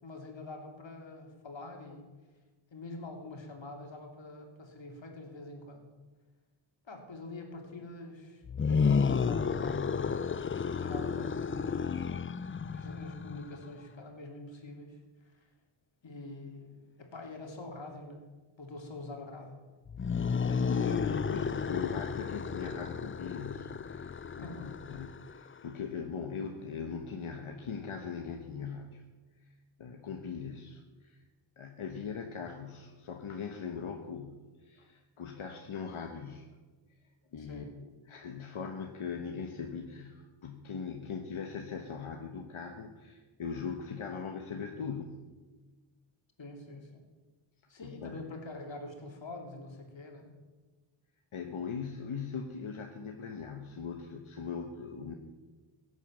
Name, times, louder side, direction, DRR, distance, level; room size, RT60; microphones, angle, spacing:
voice 1, 0.0-2.1 2.7-5.9 6.8-9.9 10.8-12.1 12.7-15.5 16.0-18.2 18.6-19.6 24.4-24.7 37.4-37.7 46.4-47.0 47.7-50.4, left 2 dB, 65° left, 2 dB, 2.9 m, -45 dB
sound 1, 8.4-13.6 19.9-25.5, left 6 dB, 30° left, 0.4 m, -32 dB
voice 2, 20.5-29.1 29.4-31.2 31.6-36.6 37.3-37.7 38.1-45.2 47.8-48.2 51.3-55.1, left 6 dB, 90° left, 4 dB, 1.2 m, -40 dB
16.5 x 8.2 x 7.3 m, 1.3 s
wide cardioid pair, 75°, 48 cm